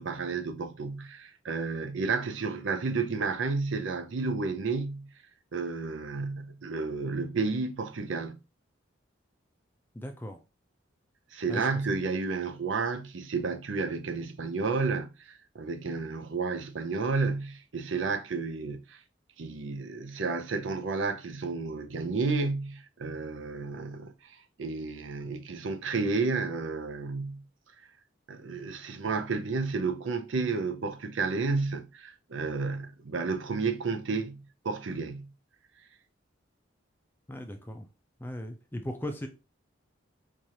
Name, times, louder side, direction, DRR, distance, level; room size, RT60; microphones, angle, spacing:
voice 1, 0.0-5.1 5.5-8.4 11.3-19.0 19.4-27.4 28.3-35.3, right 4 dB, 75° right, 0.5 m, -31 dB
voice 2, 9.9-10.4 11.5-11.7 37.3-37.9 38.2-39.3, left 1 dB, 10° left, 0.4 m, -37 dB
4.7 x 2.5 x 2.8 m
head